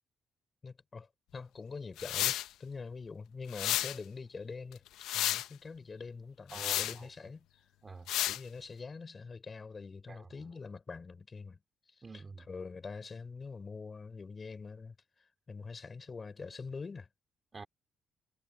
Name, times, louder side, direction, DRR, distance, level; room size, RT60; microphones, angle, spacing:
voice 1, 0.6-4.8 5.1-7.5 8.3-11.6 12.5-14.9 15.5-17.1, left 4 dB, 35° left, 5.5 m, -44 dB
sound 1, 2.0-2.5 3.5-4.0 4.7-5.5 6.5-7.0 8.1-8.4, left 13 dB, 90° left, 0.8 m, -32 dB
voice 2, 6.5-7.1 7.8-8.1 10.1-10.3 12.0-12.5 17.5-17.7, right 4 dB, 30° right, 3.9 m, -47 dB
cardioid pair, 90°, 0 cm